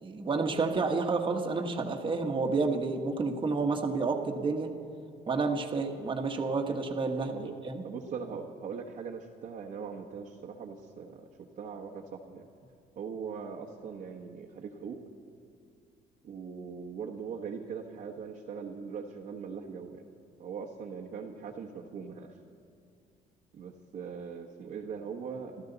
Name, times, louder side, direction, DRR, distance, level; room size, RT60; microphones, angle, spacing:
voice 1, 0.0-4.7 5.3-7.3 7.6-7.8, right 4 dB, 30° right, 3 dB, 1.3 m, -30 dB
voice 2, 7.3-7.6 7.8-11.3 11.5-12.5 13.0-15.0 16.2-20.1 20.4-22.4 23.5-25.6, right 6 dB, 55° right, -3 dB, 1.2 m, -41 dB
27.0 x 12.5 x 4.0 m, 2.4 s
cardioid pair, 110°, 17 cm